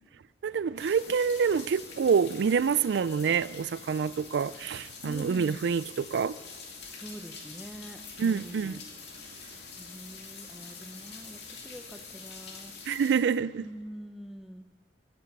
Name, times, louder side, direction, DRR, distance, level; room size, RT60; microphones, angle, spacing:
voice 1, 0.4-6.4 8.2-8.8 12.9-13.7, right 6 dB, 75° right, 0.3 m, -27 dB
sound 1, 0.8-13.2, left 4 dB, 75° left, 2.2 m, -45 dB
voice 2, 5.0-5.6 6.9-8.8 9.8-12.7 13.6-14.7, equal, ahead, 0.7 m, -45 dB
16.0 x 10.5 x 5.3 m
head